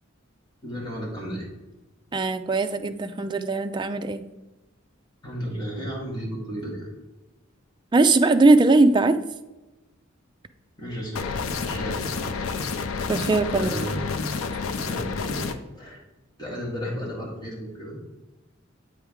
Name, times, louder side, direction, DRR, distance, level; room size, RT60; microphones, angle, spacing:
voice 1, 0.6-1.5 5.2-6.9 10.8-12.6 13.5-14.1 14.8-16.0 16.4-18.0, equal, 20° left, -4 dB, 1.8 m, -34 dB
voice 2, 2.1-4.2 7.9-9.2 13.1-13.7, right 3 dB, 20° right, 8 dB, 0.3 m, -20 dB
sound 1, 11.2-15.5, left 4 dB, 80° left, 0.5 m, -29 dB
8.0 x 4.6 x 3.5 m, 1.1 s
head